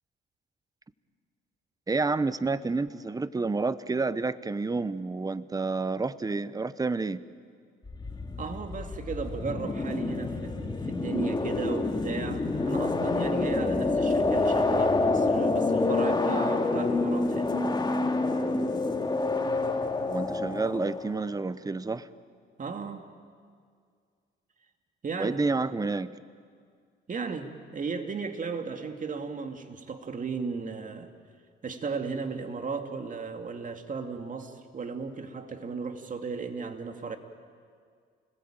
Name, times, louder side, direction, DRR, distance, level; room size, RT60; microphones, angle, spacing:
voice 1, 1.9-7.2 20.1-22.1 25.2-26.1, right 3 dB, 20° right, 15 dB, 0.9 m, -29 dB
sound 1, 7.9-21.3, left 3 dB, 20° left, 2.2 m, -27 dB
voice 2, 8.4-17.6 22.6-23.1 25.0-25.4 27.1-31.1 31.6-37.2, right 5 dB, 40° right, 6 dB, 2.3 m, -35 dB
29.0 x 20.5 x 8.9 m, 2.1 s
cardioid pair, 90°, 20 cm